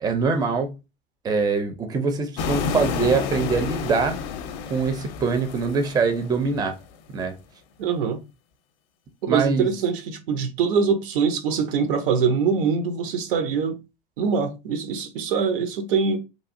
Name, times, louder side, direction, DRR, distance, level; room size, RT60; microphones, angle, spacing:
voice 1, 0.0-0.8 1.2-4.2 4.7-6.8 7.1-7.4 9.3-9.7, right 4 dB, 15° right, 0.5 m, -23 dB
sound 1, 2.4-6.6, left 6 dB, 50° left, 0.5 m, -30 dB
voice 2, 7.8-8.2 9.2-13.8 14.2-16.2, right 6 dB, 65° right, 0.6 m, -23 dB
3.0 x 2.3 x 2.5 m
hypercardioid pair, 80°, 29 cm